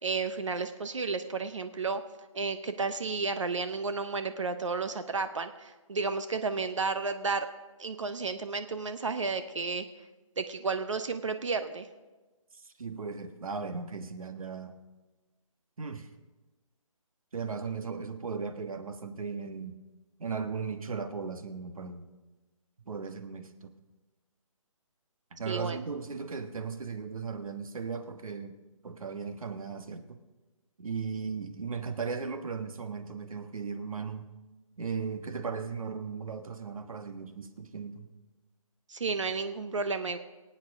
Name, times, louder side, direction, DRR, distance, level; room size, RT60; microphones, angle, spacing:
voice 1, 0.0-2.0 2.3-7.5 7.8-9.8 10.4-11.9 25.5-25.8 38.9-40.2, right 4 dB, 60° right, 9 dB, 0.8 m, -32 dB
voice 2, 12.5-14.8 15.8-16.1 17.3-19.8 20.2-22.1 22.9-23.7 25.3-28.5 28.8-30.2 30.8-34.3 34.8-38.1, right 5 dB, 75° right, 8 dB, 1.4 m, -37 dB
24.0 x 8.8 x 3.6 m, 1.2 s
hypercardioid pair, 180°, 18 cm